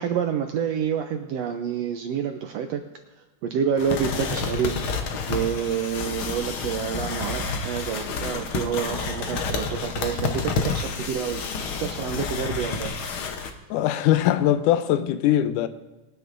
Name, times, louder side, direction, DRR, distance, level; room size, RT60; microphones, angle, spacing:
voice 1, 0.0-2.8 3.4-4.9 5.3-11.5 11.8-12.9, right 7 dB, 80° right, 1.5 m, -28 dB
sound 1, 3.8-13.5, left 4 dB, 70° left, 1.3 m, -29 dB
voice 2, 13.7-15.7, left 12 dB, 85° left, 2.1 m, -21 dB
21.5 x 9.4 x 2.6 m
omnidirectional pair, 3.6 m